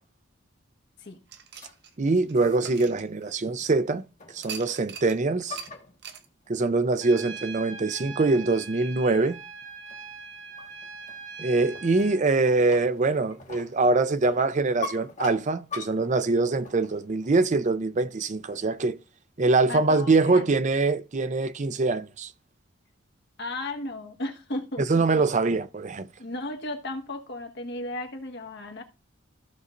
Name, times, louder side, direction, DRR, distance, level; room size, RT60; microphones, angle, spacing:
sound 1, 1.3-3.7 4.4-5.2 5.6-5.7 6.0-6.3, right 7 dB, 60° right, 0.9 m, -42 dB
sound 2, 1.5-2.8 3.2-3.5 4.2-4.8 5.1-6.5 7.2-7.3 7.8-7.9 8.5-8.8 9.1-9.3 9.9-17.3, left 4 dB, 40° left, 1.5 m, -43 dB
voice 1, 2.0-4.0 4.3-5.6 6.5-9.4 11.4-19.0 19.4-22.3 24.9-26.1, right 3 dB, 40° right, 0.5 m, -24 dB
Trumpet, 7.0-12.2, right 5 dB, 80° right, 2.1 m, -41 dB
voice 2, 19.7-20.5 23.4-25.2 26.2-28.8, left 2 dB, 60° left, 1.4 m, -35 dB
15.0 x 5.5 x 2.6 m
head